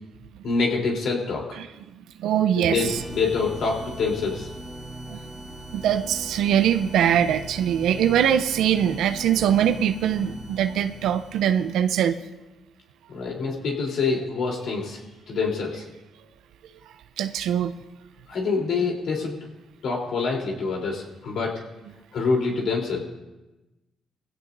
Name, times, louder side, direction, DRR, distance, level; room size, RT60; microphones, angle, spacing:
voice 1, 0.4-1.5 2.7-4.5 13.1-15.0 15.3-15.8 18.3-19.4 19.8-21.6 22.1-23.0, left 4 dB, 70° left, -1 dB, 3.5 m, -26 dB
voice 2, 2.2-3.0 5.1-5.2 5.7-12.2 17.2-17.7, right 9 dB, 80° right, 10 dB, 0.6 m, -22 dB
sound 1, 2.8-12.1, right 1 dB, 20° right, 2.0 m, -40 dB
20.0 x 16.0 x 2.7 m, 1.0 s
cardioid pair, 90°, 0 cm